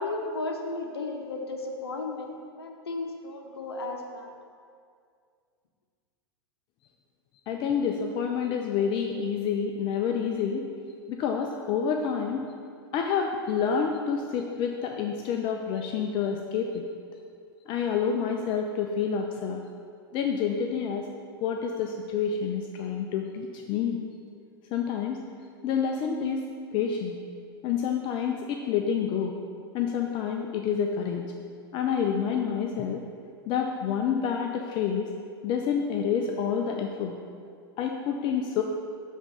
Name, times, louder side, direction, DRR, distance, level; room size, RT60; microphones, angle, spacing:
voice 1, 0.0-4.3, left 2 dB, 80° left, 3 dB, 0.7 m, -34 dB
voice 2, 7.5-10.7 11.1-12.5 12.9-16.9 17.7-19.6 20.1-21.1 21.4-24.0 24.7-25.2 25.6-26.5 26.7-27.2 27.6-29.4 29.7-31.3 31.7-33.0 33.5-35.1 35.4-37.2 37.8-38.6, left 7 dB, 40° left, 3 dB, 0.5 m, -28 dB
7.1 x 3.6 x 5.6 m, 2.2 s
hypercardioid pair, 95°, 13 cm